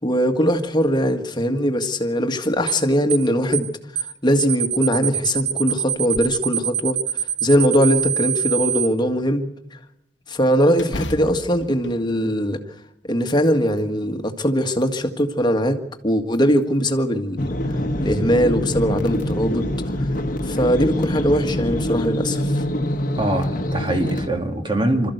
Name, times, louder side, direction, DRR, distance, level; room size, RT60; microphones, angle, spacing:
voice 1, 0.0-9.8 10.3-12.6 13.1-17.5 18.0-19.6 20.0-20.1 20.4-22.6, equal, 25° left, 1.7 m, -21 dB
sound 1, 2.7-2.8 3.1-3.3 3.5-3.7 4.0-4.1 4.4-8.9, right 9 dB, 65° right, 1.1 m, -24 dB
sound 2, 5.9-6.4 6.9-7.0 7.5-8.3 10.7-12.7 13.1-13.9 14.5-15.4 16.3-16.9 18.4-18.5 19.0-19.3 19.7-19.8 20.9-21.2, left 1 dB, 90° left, 1.2 m, -37 dB
sound 3, 17.4-24.3, left 1 dB, 50° left, 1.3 m, -25 dB
voice 2, 23.2-25.1, right 1 dB, 25° right, 2.5 m, -23 dB
26.0 x 14.0 x 8.0 m
head